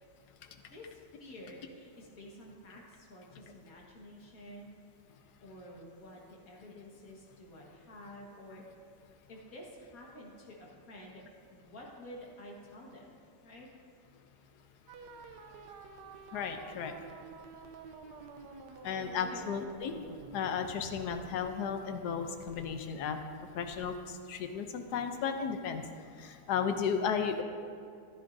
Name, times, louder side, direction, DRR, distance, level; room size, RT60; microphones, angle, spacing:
voice 1, 0.7-4.7 5.4-8.6 9.3-11.2 11.5-13.7 18.9-19.5, left 1 dB, 60° left, -2 dB, 2.0 m, -50 dB
sound 1, 14.9-24.1, right 5 dB, 90° right, 1.3 m, -50 dB
voice 2, 16.3-16.9 18.8-19.9 20.3-23.2 23.5-25.8 26.2-27.4, left 6 dB, 75° left, 7 dB, 1.3 m, -34 dB
14.0 x 11.0 x 2.6 m, 2.3 s
omnidirectional pair, 1.8 m